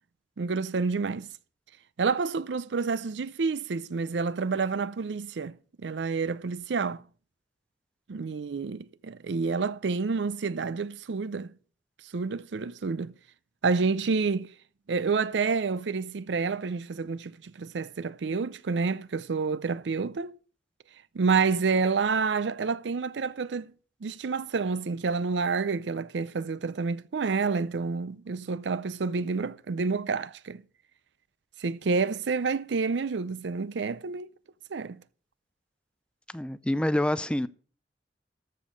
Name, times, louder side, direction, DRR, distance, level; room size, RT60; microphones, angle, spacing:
voice 1, 0.4-1.3 2.0-7.0 8.1-11.5 12.0-13.1 13.6-14.5 14.9-20.4 21.1-23.7 24.0-30.6 31.6-34.3 34.7-35.0, right 4 dB, 90° right, 0.5 m, -29 dB
voice 2, 36.3-37.5, left 1 dB, 5° left, 0.4 m, -27 dB
13.5 x 6.7 x 5.2 m
head